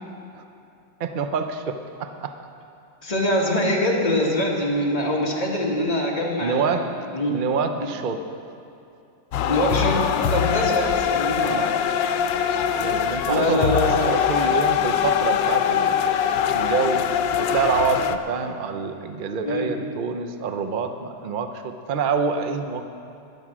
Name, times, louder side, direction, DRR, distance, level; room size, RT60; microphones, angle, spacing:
voice 1, 1.0-2.3 6.4-6.9 7.3-8.2 11.4-11.8 12.8-17.1 17.4-22.8, right 5 dB, 85° right, 7 dB, 0.4 m, -27 dB
voice 2, 3.0-6.7 7.1-7.4 9.5-11.5 13.3-14.1 19.4-19.8, left 1 dB, 20° left, -3 dB, 2.0 m, -23 dB
sound 1, 9.3-18.2, left 8 dB, 85° left, 1.3 m, -22 dB
14.5 x 10.5 x 6.2 m, 2.7 s
omnidirectional pair, 2.0 m